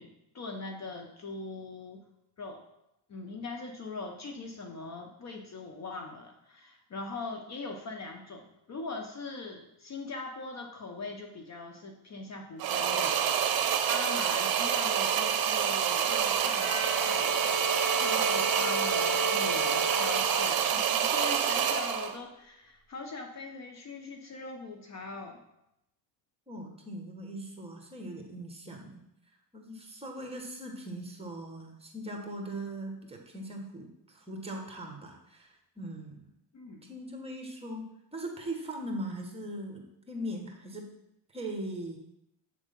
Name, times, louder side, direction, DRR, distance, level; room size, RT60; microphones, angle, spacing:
voice 1, 0.0-2.1 2.4-2.6 3.1-17.5 17.9-25.4 36.5-37.0, left 3 dB, 40° left, 3 dB, 0.8 m, -41 dB
sound 1, 12.6-22.2, right 8 dB, 55° right, 0.8 m, -27 dB
Bowed string instrument, 16.4-20.9, equal, 5° left, 1.2 m, -35 dB
voice 2, 26.5-29.0 29.5-36.3 36.9-40.9 41.3-42.0, right 1 dB, 15° right, 1 dB, 1.4 m, -40 dB
8.0 x 3.6 x 5.2 m, 0.84 s
cardioid pair, 110°, 43 cm